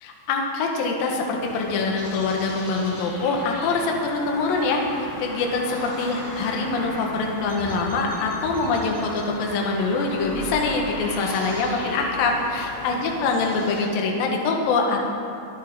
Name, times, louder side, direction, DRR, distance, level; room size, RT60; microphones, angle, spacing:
voice 1, 0.0-15.1, left 3 dB, 65° left, 0 dB, 2.8 m, -24 dB
sound 1, 1.4-13.8, left 1 dB, 80° left, 5.3 m, -37 dB
sound 2, 7.5-9.2 10.1-11.0, right 1 dB, 10° right, 0.4 m, -39 dB
26.0 x 9.6 x 3.8 m, 2.6 s
omnidirectional pair, 5.4 m